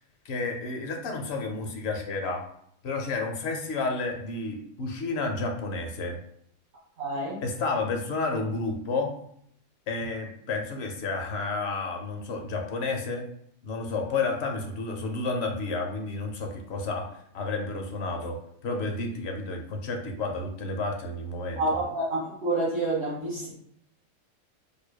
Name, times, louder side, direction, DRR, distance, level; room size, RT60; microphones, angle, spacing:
voice 1, 0.2-2.4 2.8-6.2 7.4-9.1 9.9-13.3 13.6-21.8, left 3 dB, 60° left, 3 dB, 0.8 m, -31 dB
voice 2, 7.0-7.4 21.6-23.5, right 2 dB, 55° right, -10 dB, 1.8 m, -28 dB
4.7 x 2.7 x 2.2 m, 0.68 s
omnidirectional pair, 1.5 m